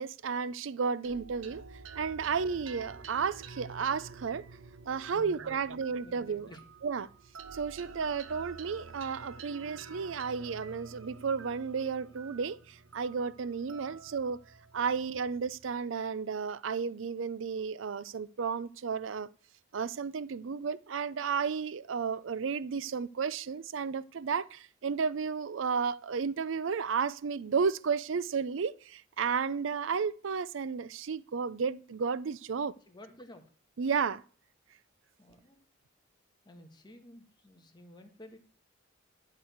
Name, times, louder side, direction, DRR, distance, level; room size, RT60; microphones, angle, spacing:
voice 1, 0.0-1.6 2.0-4.4 4.9-6.5 6.8-7.1 7.5-14.4 14.7-19.3 19.7-32.7 33.8-34.2, right 5 dB, 70° right, 0.5 m, -33 dB
sound 1, 1.0-15.7, right 4 dB, 90° right, 1.1 m, -49 dB
voice 2, 5.1-6.6 13.8-14.0 15.0-15.1 32.9-33.4 35.2-35.6 36.4-38.4, left 1 dB, 20° left, 1.7 m, -52 dB
12.0 x 4.7 x 8.0 m
head